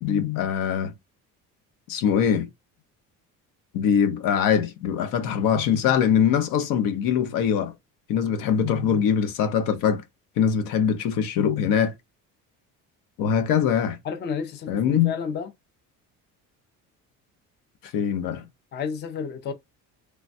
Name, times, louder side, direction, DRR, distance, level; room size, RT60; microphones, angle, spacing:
voice 1, 0.0-0.9 1.9-2.5 3.7-7.7 8.1-10.0 10.4-11.9 13.2-14.0 14.7-15.1 17.9-18.4, left 8 dB, 75° left, 0.6 m, -22 dB
voice 2, 14.0-15.5 18.7-19.5, left 6 dB, 30° left, 0.4 m, -31 dB
3.2 x 2.1 x 2.5 m
cardioid pair, 145°, 34 cm